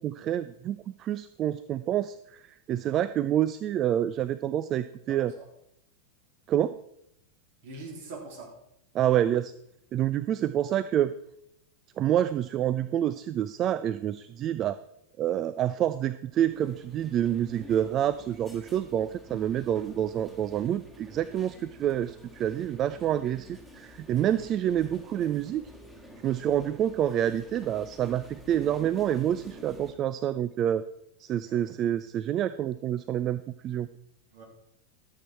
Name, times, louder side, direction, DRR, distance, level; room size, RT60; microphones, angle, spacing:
voice 1, 0.0-2.4 2.7-5.3 6.5-6.8 8.9-9.5 9.9-11.1 12.0-14.8 15.2-25.7 26.2-30.8 31.2-33.9, right 11 dB, 30° right, 14 dB, 0.3 m, -28 dB
voice 2, 5.1-5.4 7.6-8.5 31.4-31.7 34.3-34.4, right 3 dB, 50° right, 0 dB, 3.2 m, -43 dB
sound 1, 16.3-29.9, equal, ahead, 1.8 m, -49 dB
12.0 x 7.8 x 4.4 m, 0.76 s
figure-of-eight pair, 90°, 0 cm